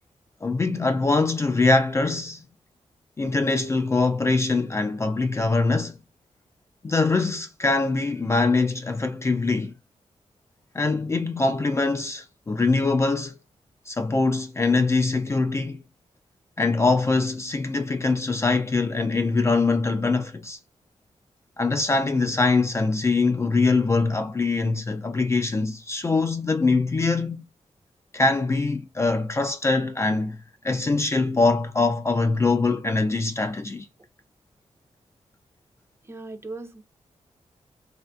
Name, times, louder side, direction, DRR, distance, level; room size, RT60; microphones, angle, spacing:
voice 1, 0.4-2.4 3.2-6.0 6.8-9.7 10.7-13.4 13.9-15.8 16.6-20.6 21.6-27.4 28.1-30.4 30.6-33.9, left 3 dB, 25° left, 0.3 m, -23 dB
voice 2, 36.0-36.8, right 3 dB, 20° right, 0.6 m, -38 dB
3.4 x 2.5 x 2.2 m
wide cardioid pair, 165°, 12 cm